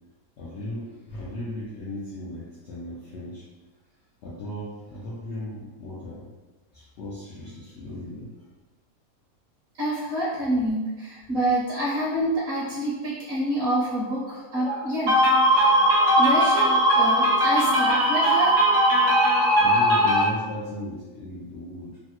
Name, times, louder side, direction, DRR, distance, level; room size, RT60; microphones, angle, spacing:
voice 1, 0.4-3.4 4.2-6.3 6.7-8.4 10.5-10.7 19.6-22.0, left 1 dB, 70° left, -7 dB, 0.6 m, -36 dB
voice 2, 9.8-20.2, equal, 50° right, -8 dB, 0.9 m, -21 dB
3.1 x 2.1 x 2.8 m, 1.2 s
omnidirectional pair, 1.7 m